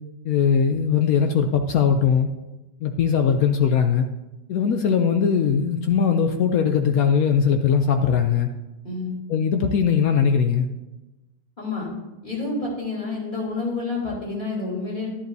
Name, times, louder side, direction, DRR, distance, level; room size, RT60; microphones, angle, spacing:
voice 1, 0.2-2.3 2.8-4.1 4.5-8.5 9.3-10.7, left 7 dB, 80° left, 6 dB, 0.8 m, -20 dB
voice 2, 11.6-11.9 12.2-15.1, left 3 dB, 25° left, -5 dB, 3.4 m, -28 dB
11.5 x 10.5 x 2.7 m, 1.1 s
omnidirectional pair, 2.1 m